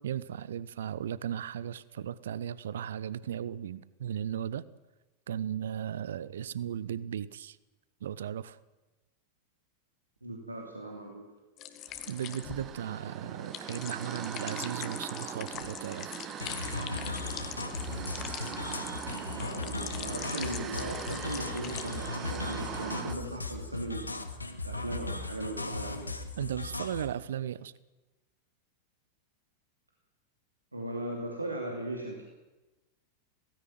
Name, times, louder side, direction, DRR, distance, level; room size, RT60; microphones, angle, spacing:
voice 1, 0.0-4.6 5.3-7.6 8.0-8.6 12.1-16.1 26.4-27.7, right 9 dB, 60° right, 19 dB, 0.7 m, -36 dB
voice 2, 10.2-11.2 19.3-26.1 30.7-32.2, right 1 dB, 85° right, 0 dB, 2.8 m, -38 dB
sound 1, 11.6-22.1 22.4-22.8, left 11 dB, 35° left, 1.7 m, -43 dB
sound 2, 11.9-23.1, right 8 dB, 30° right, 1.6 m, -41 dB
sound 3, 16.4-27.1, left 3 dB, 80° left, 1.8 m, -37 dB
17.5 x 16.0 x 9.3 m, 1.1 s
figure-of-eight pair, 90°, 0 cm